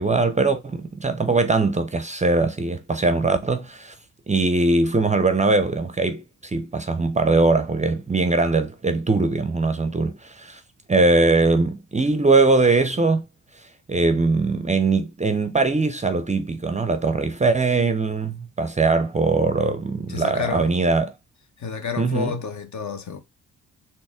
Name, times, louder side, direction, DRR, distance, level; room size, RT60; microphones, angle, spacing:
voice 1, 0.0-3.9 4.3-10.6 10.9-13.3 13.9-21.1 22.0-22.3, right 3 dB, 20° right, 0.5 m, -21 dB
voice 2, 20.1-20.7 21.6-23.2, left 6 dB, 50° left, 1.0 m, -30 dB
4.0 x 2.0 x 3.5 m
supercardioid pair, 50°, 36 cm